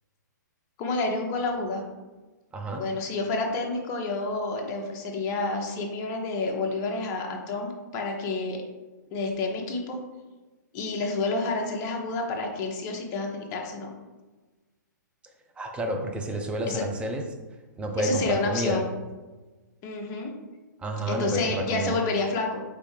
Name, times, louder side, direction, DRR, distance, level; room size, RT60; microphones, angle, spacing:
voice 1, 0.8-1.8 2.8-8.6 9.1-10.0 10.7-13.9 16.7-16.8 18.0-18.9 19.8-20.3 21.1-22.6, left 3 dB, 30° left, 1 dB, 0.8 m, -29 dB
voice 2, 2.5-2.8 15.6-17.2 17.8-18.8 20.8-22.0, right 1 dB, 10° right, 3 dB, 0.5 m, -29 dB
5.1 x 3.2 x 3.3 m, 1.2 s
hypercardioid pair, 130°, 10 cm